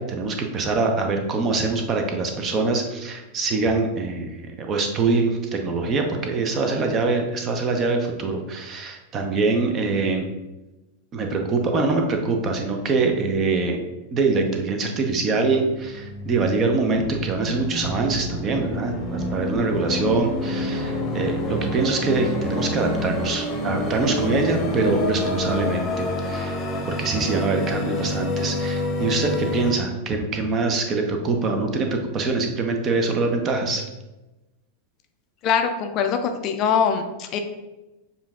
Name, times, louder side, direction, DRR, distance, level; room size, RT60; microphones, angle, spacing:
voice 1, 0.0-10.3 11.1-13.8 14.1-33.8, right 3 dB, 30° right, 4 dB, 0.6 m, -24 dB
sound 1, 15.7-29.7, left 1 dB, 20° left, 0.9 m, -28 dB
voice 2, 35.4-37.4, left 7 dB, 35° left, 6 dB, 0.4 m, -22 dB
6.8 x 2.6 x 2.4 m, 1.0 s
figure-of-eight pair, 90°, 0 cm